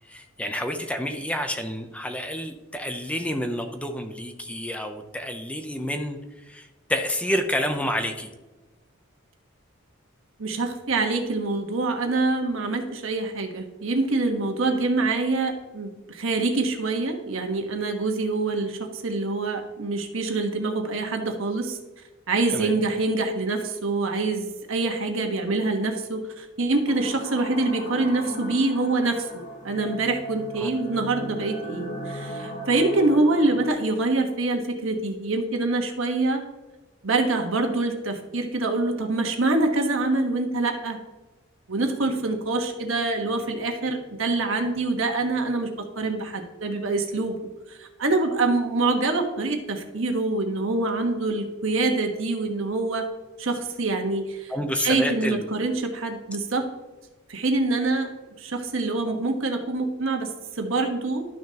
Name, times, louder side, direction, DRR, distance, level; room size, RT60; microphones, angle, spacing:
voice 1, 0.0-8.3 22.5-22.8 30.6-30.7 54.5-55.5, equal, 5° left, 6 dB, 0.6 m, -29 dB
voice 2, 10.4-21.8 22.3-36.4 37.0-41.0 41.7-45.7 46.0-47.4 47.7-53.1 53.4-56.7 57.3-58.1 58.4-61.3, right 3 dB, 75° right, 4 dB, 1.3 m, -25 dB
sound 1, 26.8-33.7, equal, 45° left, 1.4 m, -37 dB
12.5 x 6.2 x 2.9 m, 1.2 s
head